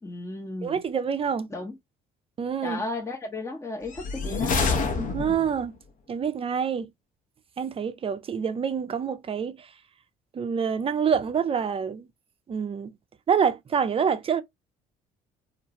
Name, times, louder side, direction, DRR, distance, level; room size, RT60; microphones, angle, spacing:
voice 1, 0.0-0.8 1.5-1.8 2.6-5.0, left 2 dB, 15° left, 0.8 m, -34 dB
voice 2, 0.6-1.5 2.4-2.8 5.0-5.8 6.1-6.9 7.6-9.7 10.3-12.1 12.5-12.9 13.3-14.4, right 7 dB, 35° right, 0.5 m, -27 dB
sound 1, 3.9-5.7, left 4 dB, 50° left, 0.7 m, -27 dB
2.5 x 2.2 x 2.8 m
supercardioid pair, 70°, 17 cm